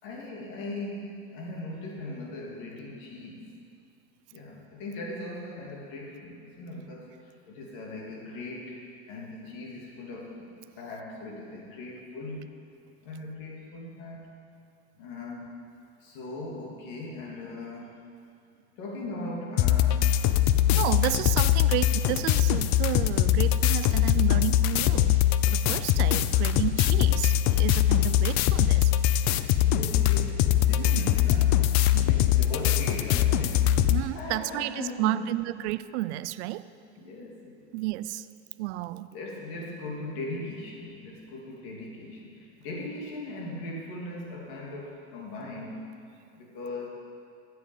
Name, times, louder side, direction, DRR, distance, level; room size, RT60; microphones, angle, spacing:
voice 1, 0.0-3.5 4.3-8.8 9.1-10.5 10.8-12.5 13.0-14.3 15.0-15.6 16.0-18.1 18.8-20.1 21.7-21.9 29.6-33.8 34.1-35.3 37.0-37.6 39.1-45.8 46.3-46.9, left 2 dB, 70° left, -2 dB, 2.8 m, -39 dB
sound 1, 19.6-34.0, left 12 dB, 55° left, 0.6 m, -22 dB
voice 2, 20.7-25.2 25.5-28.9 30.7-31.1 31.9-32.0 33.9-36.7 37.7-38.3 38.6-39.1, right 16 dB, 80° right, 16 dB, 0.5 m, -31 dB
14.5 x 7.7 x 5.5 m, 2.4 s
supercardioid pair, 110°, 33 cm